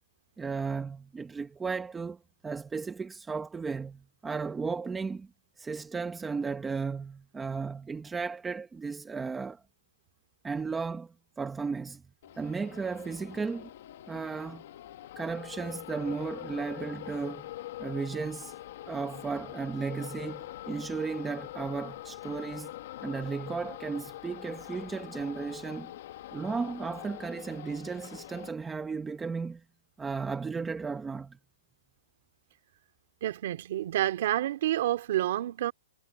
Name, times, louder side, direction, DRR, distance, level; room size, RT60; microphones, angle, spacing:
voice 1, 0.4-5.3 5.6-9.6 10.4-12.0 12.4-13.7 14.1-14.6 15.2-17.5 17.8-18.5 18.9-22.7 23.0-25.9 26.3-29.6 30.0-31.4, right 5 dB, 5° right, 0.9 m, -35 dB
sound 1, 12.2-28.5, left 14 dB, 40° left, 1.5 m, -44 dB
voice 2, 33.2-35.7, right 13 dB, 40° right, 2.7 m, -29 dB
hypercardioid pair, 175°, 0 cm